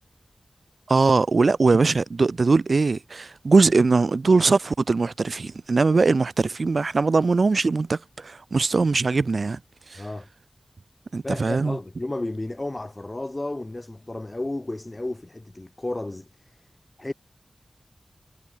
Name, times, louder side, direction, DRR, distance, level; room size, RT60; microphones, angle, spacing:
voice 1, 0.9-9.6 9.9-10.0 11.1-11.8, right 4 dB, 70° right, 0.6 m, -21 dB
voice 2, 10.0-10.3 11.2-16.6 17.0-17.1, left 2 dB, 30° left, 2.8 m, -32 dB
wide cardioid pair, 55°, 0 cm